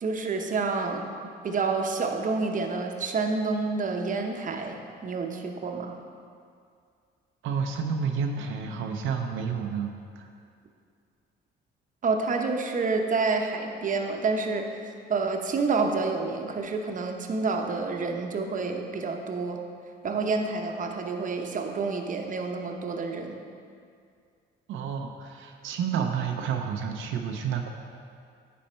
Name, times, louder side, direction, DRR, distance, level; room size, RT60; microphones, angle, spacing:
voice 1, 0.0-6.0 12.0-14.8 15.1-19.6 20.0-23.4, right 4 dB, 40° right, 3 dB, 0.8 m, -28 dB
voice 2, 7.4-10.3 24.7-27.7, right 6 dB, 85° right, 3 dB, 0.6 m, -30 dB
10.5 x 4.2 x 4.3 m, 2.3 s
cardioid pair, 90°, 20 cm